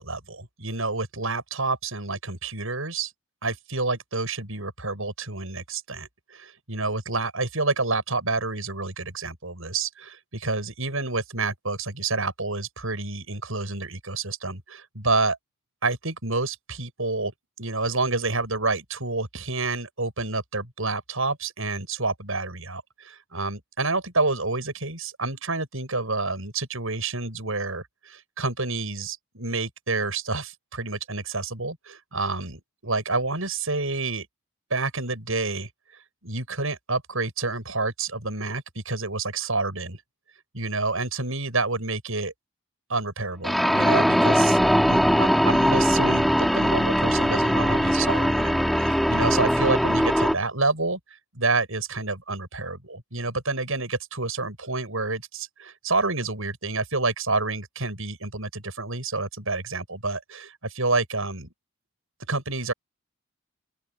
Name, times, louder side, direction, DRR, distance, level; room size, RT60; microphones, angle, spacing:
voice 1, 0.0-3.1 3.4-15.4 15.8-17.3 17.6-34.3 34.7-35.7 36.2-40.0 40.5-42.3 42.9-44.6 44.9-51.0 51.3-61.5 62.3-62.7, right 3 dB, 75° right, 7.1 m, -28 dB
sound 1, 43.4-50.4, equal, ahead, 2.3 m, -21 dB
open air
head